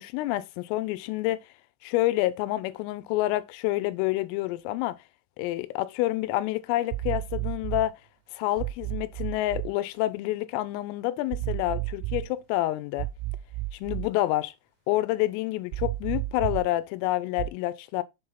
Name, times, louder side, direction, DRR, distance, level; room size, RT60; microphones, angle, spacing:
voice 1, 0.0-1.4 1.8-5.0 5.4-8.0 8.3-13.1 13.8-14.5 14.9-18.0, left 16 dB, 85° left, 3.2 m, -28 dB
sound 1, 6.9-7.9 8.6-9.7 11.3-12.3 13.0-14.1 15.7-16.7 17.4-17.5, right 18 dB, 85° right, 3.2 m, -32 dB
7.2 x 3.9 x 5.6 m
omnidirectional pair, 5.8 m